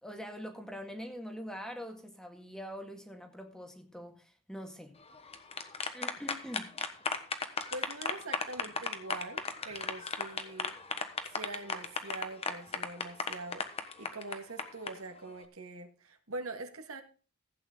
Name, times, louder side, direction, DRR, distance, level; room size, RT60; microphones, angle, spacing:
voice 1, 0.0-5.0 5.9-6.7, equal, 5° left, 4 dB, 1.8 m, -44 dB
sound 1, 5.1-14.9, left 4 dB, 30° left, 1.2 m, -35 dB
voice 2, 7.7-10.7 11.3-17.0, right 2 dB, 75° right, 6 dB, 1.9 m, -43 dB
15.5 x 8.9 x 3.8 m, 0.37 s
head